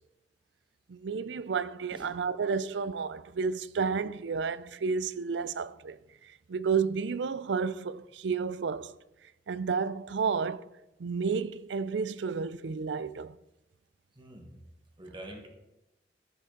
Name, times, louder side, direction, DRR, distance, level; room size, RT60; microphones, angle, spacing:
voice 1, 0.9-6.0 6.2-8.9 9.5-10.7 11.0-13.4, right 5 dB, 85° right, 0.4 m, -31 dB
voice 2, 14.2-14.6 15.0-15.5, right 1 dB, 30° right, 1.6 m, -45 dB
15.0 x 6.4 x 3.9 m
head